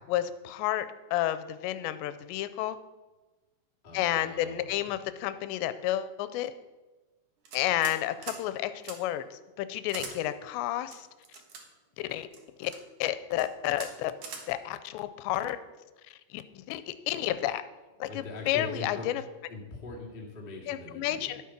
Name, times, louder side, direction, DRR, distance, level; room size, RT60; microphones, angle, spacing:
voice 1, 0.1-0.9 1.1-2.8 3.9-6.5 7.5-9.3 9.6-11.1 12.1-12.3 12.6-12.7 13.0-14.1 14.5-15.6 16.3-17.6 18.0-19.2 20.7-21.4, left 13 dB, 85° left, 12 dB, 2.8 m, -31 dB
voice 2, 3.8-4.9 18.0-19.1 19.5-21.3, left 2 dB, 45° left, -3 dB, 0.6 m, -42 dB
sound 1, 7.5-8.4 8.8-9.0 9.9-10.1 10.9-11.6 12.3-12.8 13.3-13.5 13.7-13.9 14.2-14.4, right 5 dB, 60° right, 2.4 m, -41 dB
11.5 x 8.5 x 5.9 m, 1.2 s
omnidirectional pair, 5.1 m